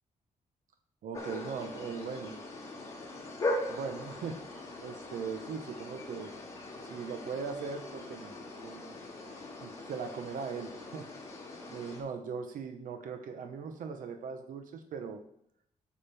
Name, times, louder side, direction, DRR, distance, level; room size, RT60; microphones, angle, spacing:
voice 1, 1.0-2.4 3.7-4.4 4.8-6.3 6.8-9.0 9.6-11.1 11.7-15.2, right 5 dB, 75° right, 6 dB, 0.9 m, -39 dB
sound 1, 1.1-12.0, left 2 dB, 20° left, 3.6 m, -40 dB
10.0 x 7.4 x 3.4 m, 0.71 s
cardioid pair, 135°, 14 cm